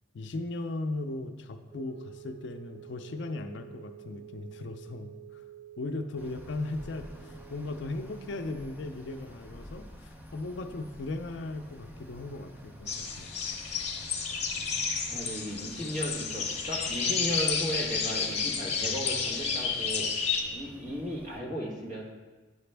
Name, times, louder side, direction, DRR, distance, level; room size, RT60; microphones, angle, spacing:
voice 1, 0.1-5.4 5.8-13.3 15.1-15.3, left 2 dB, 60° left, 7 dB, 0.4 m, -37 dB
sound 1, 1.7-8.3, right 12 dB, 60° right, 0.9 m, -50 dB
sound 2, 6.2-21.4, equal, 10° right, 0.5 m, -49 dB
sound 3, 12.9-20.4, left 5 dB, 35° left, 0.8 m, -31 dB
voice 2, 15.1-20.2 20.5-22.0, equal, 40° right, -3 dB, 1.3 m, -35 dB
9.5 x 4.9 x 3.3 m, 1.3 s
head